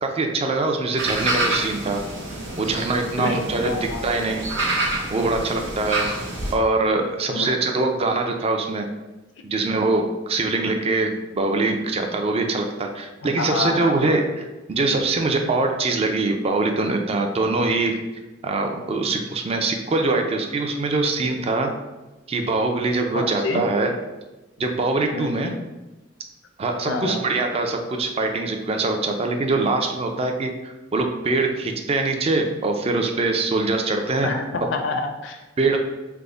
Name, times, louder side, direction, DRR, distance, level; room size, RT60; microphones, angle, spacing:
voice 1, 0.0-2.0 2.6-4.5 5.1-6.0 6.5-8.9 9.4-14.2 14.7-17.9 18.4-21.7 22.3-23.9 24.6-25.5 26.6-34.3 35.6-35.8, right 3 dB, 30° right, 4 dB, 0.4 m, -23 dB
sound 1, 1.0-6.5, right 2 dB, 70° right, 0.8 m, -28 dB
voice 2, 3.2-4.4 7.3-7.5 13.4-14.2 23.1-23.7 25.1-25.6 26.9-27.2 34.2-35.4, left 3 dB, 70° left, 5 dB, 0.4 m, -28 dB
3.4 x 2.0 x 3.7 m, 1.1 s
head